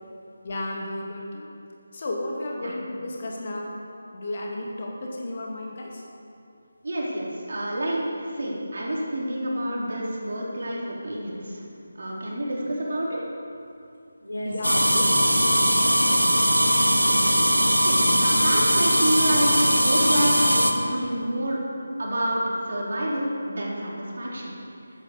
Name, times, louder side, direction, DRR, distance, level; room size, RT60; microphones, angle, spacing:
voice 1, 0.4-1.4 1.9-3.7 4.1-6.0 7.1-7.2 14.4-15.1, left 1 dB, 40° left, -1 dB, 2.5 m, -33 dB
voice 2, 6.8-11.6 12.0-13.2 17.0-17.2 17.8-19.5 19.8-21.6 22.0-22.4 22.7-24.6, right 1 dB, 55° right, -4 dB, 4.0 m, -28 dB
voice 3, 14.2-16.4, equal, 70° left, -2 dB, 3.9 m, -35 dB
sound 1, 14.6-20.7, equal, 90° right, 1.6 m, -20 dB
14.0 x 9.9 x 6.8 m, 2.5 s
figure-of-eight pair, 155°, 0 cm